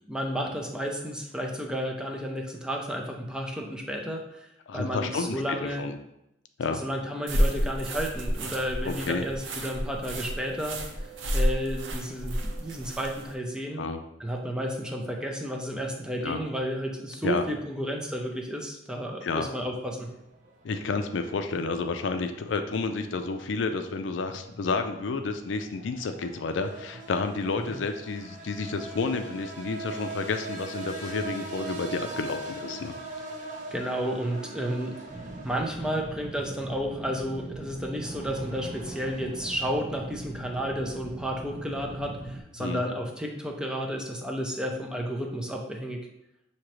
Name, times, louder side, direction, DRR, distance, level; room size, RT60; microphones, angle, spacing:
voice 1, 0.1-4.5 4.7-5.9 6.7-10.8 11.3-13.8 14.2-20.1 27.7-27.8 33.7-35.0 35.4-46.1, equal, 5° right, 1 dB, 0.5 m, -32 dB
voice 2, 4.7-5.9 6.6-6.8 8.8-9.2 13.8-14.0 16.2-16.4 17.2-17.4 19.2-19.5 20.6-32.9 42.6-42.8, left 4 dB, 80° left, 7 dB, 0.4 m, -30 dB
sound 1, 7.3-13.3, equal, 85° right, 0.6 m, -30 dB
sound 2, 20.0-39.7, right 2 dB, 45° right, 0.8 m, -43 dB
sound 3, 35.1-42.4, right 1 dB, 25° right, 1.2 m, -41 dB
6.1 x 2.9 x 3.1 m, 0.84 s
head